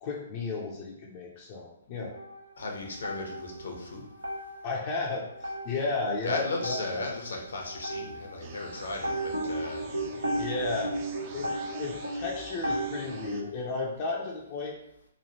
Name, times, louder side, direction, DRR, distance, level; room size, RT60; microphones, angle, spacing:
voice 1, 0.0-2.1 4.6-7.0 10.4-11.0 11.3-14.8, left 3 dB, 35° left, -1 dB, 0.5 m, -33 dB
sound 1, 2.1-3.9 4.2-13.3, right 1 dB, 85° right, 0.7 m, -35 dB
voice 2, 2.6-4.0 6.2-10.1, left 2 dB, 70° left, 1 dB, 0.7 m, -36 dB
sound 2, 8.4-13.4, right 4 dB, 35° right, 0.4 m, -47 dB
3.0 x 2.3 x 2.8 m, 0.79 s
figure-of-eight pair, 125°, 0 cm